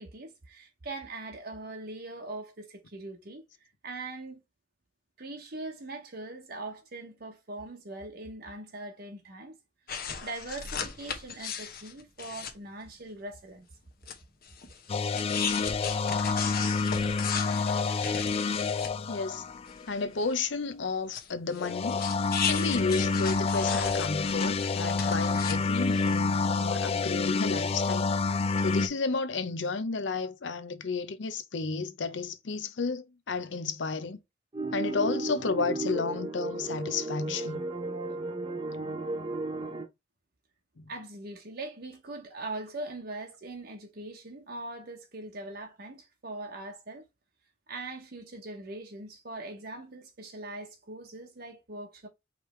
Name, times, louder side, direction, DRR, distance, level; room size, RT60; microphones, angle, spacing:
voice 1, 0.0-3.4 3.8-4.4 5.2-9.6 10.2-13.7 15.7-15.8 40.9-47.1 47.7-52.1, right 2 dB, 55° right, 0.9 m, -41 dB
sound 1, 9.9-12.5 14.0-14.2 14.4-18.9 19.3-19.4 19.6-20.6 21.1-25.6 25.9-26.7, left 6 dB, 55° left, 0.9 m, -37 dB
sound 2, 14.9-20.0 21.6-28.9, left 4 dB, 35° left, 0.3 m, -28 dB
voice 2, 19.1-19.5 19.9-22.0 22.4-28.1 28.3-34.2 34.7-37.6 40.8-40.9, left 4 dB, 85° left, 0.7 m, -32 dB
sound 3, 34.5-39.9, right 2 dB, 30° right, 0.8 m, -34 dB
5.1 x 3.3 x 3.1 m
head